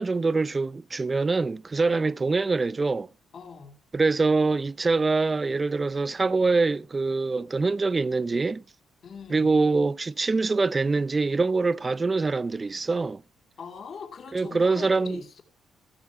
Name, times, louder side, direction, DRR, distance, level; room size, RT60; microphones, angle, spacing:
voice 1, 0.0-3.1 3.9-8.6 9.3-13.2 14.3-15.2, right 3 dB, 25° right, 0.5 m, -24 dB
voice 2, 1.8-2.2 3.3-3.8 9.0-9.5 13.6-15.4, left 5 dB, 50° left, 2.5 m, -42 dB
16.0 x 7.2 x 4.6 m
cardioid pair, 90°, 0 cm